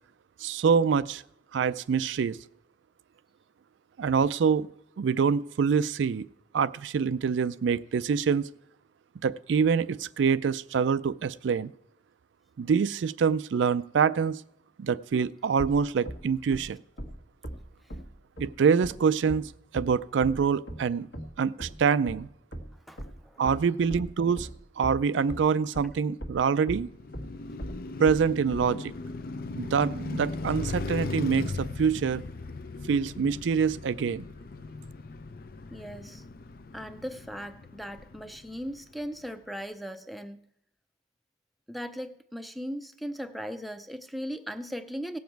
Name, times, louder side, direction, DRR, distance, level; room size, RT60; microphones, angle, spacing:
voice 1, 0.4-1.2 1.5-2.4 4.0-4.7 5.0-6.3 6.5-8.5 9.2-11.7 12.6-14.4 14.8-16.8 18.4-21.1 21.4-22.3 23.4-24.5 24.8-26.9 28.0-28.9 29.6-32.2 32.9-34.2, right 6 dB, 80° right, 15 dB, 0.4 m, -25 dB
sound 1, 15.6-25.5 25.7-28.7, equal, 65° left, 1.4 m, -39 dB
voice 2, 22.9-23.4 35.7-36.2 36.7-40.5 41.7-45.2, equal, ahead, 9 dB, 0.5 m, -38 dB
Car passing by, 26.8-39.1, left 3 dB, 50° left, 0.5 m, -38 dB
17.5 x 7.2 x 4.6 m, 0.77 s
head